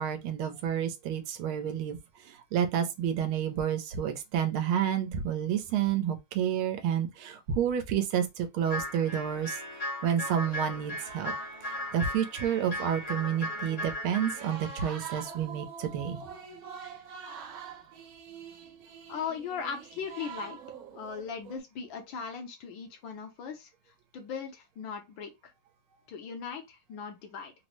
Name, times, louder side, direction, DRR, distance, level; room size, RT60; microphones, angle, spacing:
voice 1, 0.0-9.6 10.0-11.3 11.6-16.2, right 9 dB, 85° right, 1.5 m, -30 dB
sound 1, 8.7-14.5, left 1 dB, 35° left, 0.7 m, -37 dB
sound 2, 10.5-12.2 12.4-12.5 13.0-21.6, right 6 dB, 70° right, 0.8 m, -45 dB
voice 2, 19.1-20.6 20.9-23.7 24.1-25.5 26.1-27.5, left 6 dB, 75° left, 1.5 m, -38 dB
3.9 x 2.0 x 3.1 m
omnidirectional pair, 2.3 m